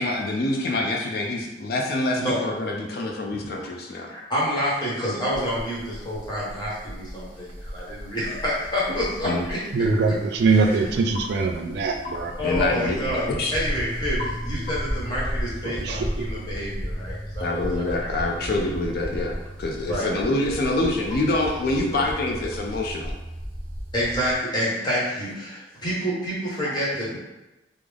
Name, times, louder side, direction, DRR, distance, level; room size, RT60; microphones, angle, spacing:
voice 1, 0.0-4.1 9.2-9.5 12.4-13.5 17.4-23.1, left 2 dB, 60° left, 1 dB, 0.4 m, -26 dB
voice 2, 4.1-9.6 12.4-13.2 13.5-18.1 19.8-20.1 23.9-27.1, equal, 25° left, -7 dB, 1.0 m, -28 dB
sound 1, 5.3-24.4, equal, 30° right, 0.8 m, -34 dB
voice 3, 9.7-12.3 15.6-16.3, right 4 dB, 65° right, 4 dB, 0.3 m, -23 dB
sound 2, 11.1-11.3 12.0-12.3 14.2-14.4 14.7-15.0, left 4 dB, 80° left, 0.9 m, -35 dB
3.5 x 2.0 x 3.3 m, 1.0 s
head